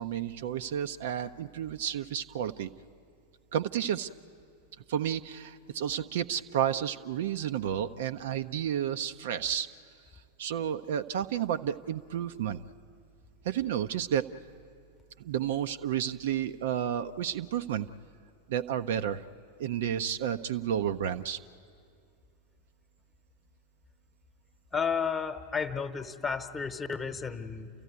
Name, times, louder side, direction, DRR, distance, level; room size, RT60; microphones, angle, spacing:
voice 1, 0.0-2.7 3.5-4.1 4.9-9.7 10.4-12.6 13.4-14.3 15.2-17.9 18.5-19.2 19.6-21.4, right 9 dB, 55° right, 10 dB, 0.5 m, -31 dB
voice 2, 24.7-27.7, left 6 dB, 20° left, 10 dB, 1.1 m, -32 dB
29.0 x 14.0 x 9.5 m, 2.2 s
figure-of-eight pair, 90°, 0 cm